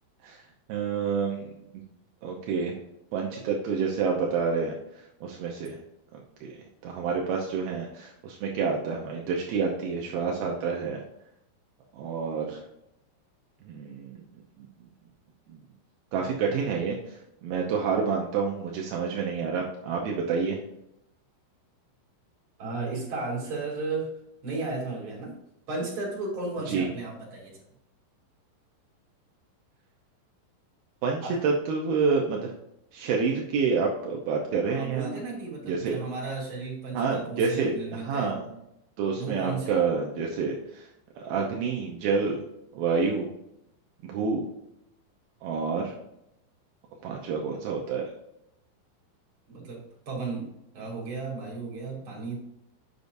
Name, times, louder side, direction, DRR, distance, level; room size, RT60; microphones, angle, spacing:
voice 1, 0.7-1.5 2.2-2.8 3.1-5.8 6.1-6.6 6.8-11.0 11.9-12.6 13.7-14.2 14.6-14.7 15.5-15.6 16.1-20.6 26.7-26.9 31.0-32.5 32.9-35.2 35.6-36.0 36.9-38.5 39.0-40.9 41.2-42.4 42.7-43.3 44.0-44.5 45.4-45.9 47.0-48.1, right 5 dB, 80° right, -1 dB, 2.1 m, -28 dB
voice 2, 22.6-24.1 24.4-25.3 25.7-27.6 31.2-31.4 34.7-38.3 39.1-39.8 49.5-52.3, right 3 dB, 30° right, -4 dB, 3.2 m, -34 dB
9.4 x 6.9 x 2.7 m, 0.82 s
omnidirectional pair, 5.5 m